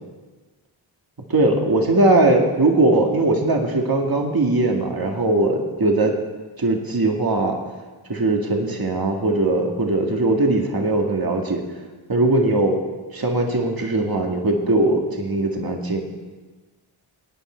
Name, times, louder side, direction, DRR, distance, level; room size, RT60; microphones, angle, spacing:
voice 1, 1.3-6.2 6.6-7.6 8.1-11.6 12.1-12.8 13.1-16.0, right 2 dB, 45° right, 2 dB, 1.9 m, -20 dB
18.5 x 9.2 x 4.5 m, 1.3 s
cardioid pair, 45°, 49 cm